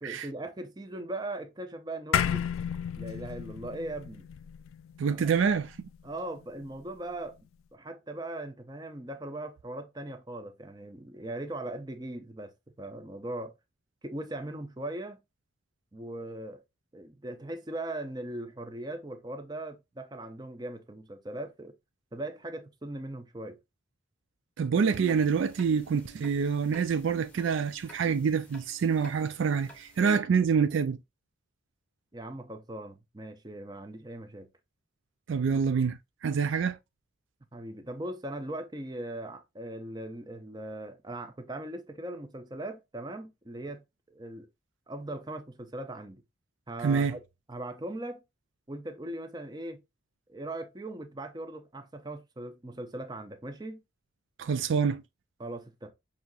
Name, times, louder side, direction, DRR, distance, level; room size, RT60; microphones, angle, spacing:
voice 1, 0.0-2.5 3.0-4.2 5.0-5.3 6.0-7.4 7.7-12.5 12.8-13.5 14.0-15.2 15.9-16.6 16.9-21.7 22.1-23.6 32.1-34.5 37.5-44.5 44.9-46.2 46.7-47.2 47.5-48.2 48.7-49.8 50.3-53.8 55.4-55.9, right 1 dB, 20° right, 0.6 m, -39 dB
sound 1, 2.1-6.8, left 8 dB, 85° left, 0.4 m, -33 dB
voice 2, 5.0-5.9 24.6-31.0 35.3-36.8 46.8-47.2 54.4-55.0, right 6 dB, 65° right, 0.3 m, -26 dB
sound 2, 24.9-30.0, right 2 dB, 5° left, 0.9 m, -52 dB
6.1 x 2.8 x 2.4 m
head